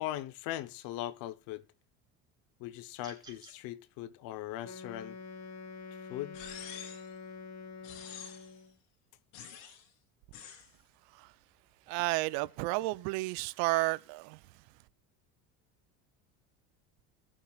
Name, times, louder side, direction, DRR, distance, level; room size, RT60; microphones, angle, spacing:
voice 1, 0.0-1.7 2.6-5.2 6.1-6.4, left 14 dB, 65° left, 0.9 m, -39 dB
sound 1, 3.0-3.6, right 4 dB, 10° right, 3.7 m, -53 dB
Wind instrument woodwind instrument, 4.6-8.8, left 4 dB, 50° left, 1.6 m, -46 dB
sound 2, 6.3-7.1 7.8-8.6 9.3-9.9 10.3-10.7, left 8 dB, 80° left, 2.9 m, -47 dB
voice 2, 11.9-14.6, right 21 dB, 75° right, 0.7 m, -32 dB
21.5 x 7.3 x 2.4 m
supercardioid pair, 110°, 37 cm